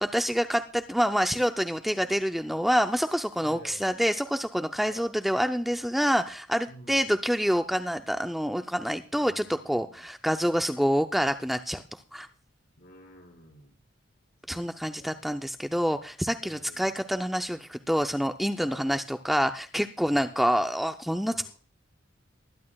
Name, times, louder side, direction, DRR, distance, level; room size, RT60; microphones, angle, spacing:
voice 1, 0.0-12.3 14.5-21.5, equal, ahead, 6 dB, 0.5 m, -27 dB
voice 2, 3.4-3.9 4.9-5.1 6.7-7.1 9.1-10.1 12.8-13.8 14.5-15.2 16.4-16.9 18.6-18.9 20.0-20.4 21.2-21.5, equal, 60° left, 1 dB, 4.8 m, -51 dB
21.0 x 11.0 x 2.3 m, 0.39 s
head